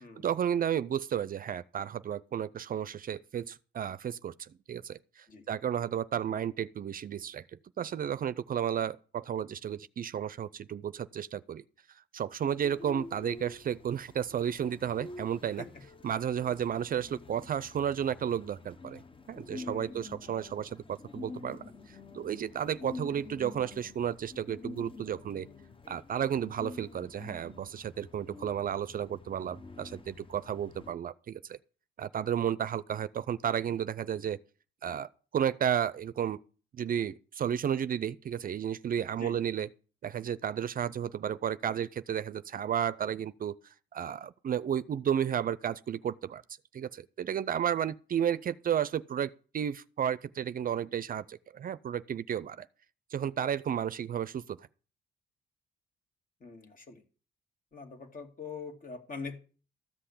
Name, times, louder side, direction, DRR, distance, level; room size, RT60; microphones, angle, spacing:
voice 1, 0.0-7.4 7.8-11.6 12.1-15.6 16.0-19.0 19.3-25.5 25.9-31.6 32.0-34.4 34.8-36.4 36.7-39.7 40.0-46.4 46.7-52.7 53.1-54.7, right 9 dB, 45° right, 0.5 m, -33 dB
sound 1, 12.4-30.9, left 3 dB, 25° left, 0.9 m, -48 dB
voice 2, 19.5-20.0 39.1-39.4 56.4-57.0 57.7-59.4, left 4 dB, 45° left, 2.3 m, -43 dB
13.5 x 5.8 x 8.4 m
cardioid pair, 90°, 20 cm